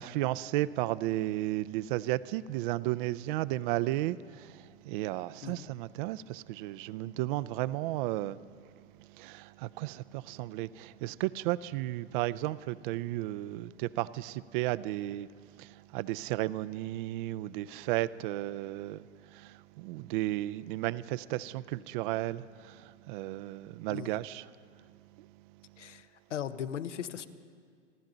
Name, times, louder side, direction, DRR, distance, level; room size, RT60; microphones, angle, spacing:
voice 1, 0.0-8.7 9.0-15.3 15.6-24.5 25.2-25.3, right 16 dB, 45° right, 0.4 m, -34 dB
voice 2, 23.9-24.2 25.8-27.3, left 9 dB, 85° left, 0.9 m, -38 dB
27.0 x 12.0 x 3.9 m
hypercardioid pair, 115°, 35 cm